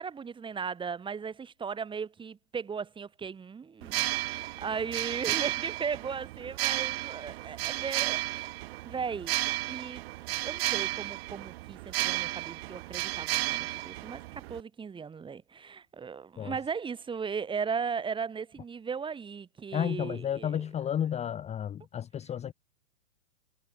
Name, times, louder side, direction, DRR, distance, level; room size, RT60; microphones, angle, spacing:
voice 1, 0.0-8.5 8.8-10.0 10.4-20.6, right 6 dB, 10° right, 2.6 m, -37 dB
sound 1, 3.8-14.6, right 20 dB, 45° right, 3.2 m, -33 dB
voice 2, 19.7-22.5, left 9 dB, 15° left, 1.4 m, -32 dB
hypercardioid pair, 130°, 41 cm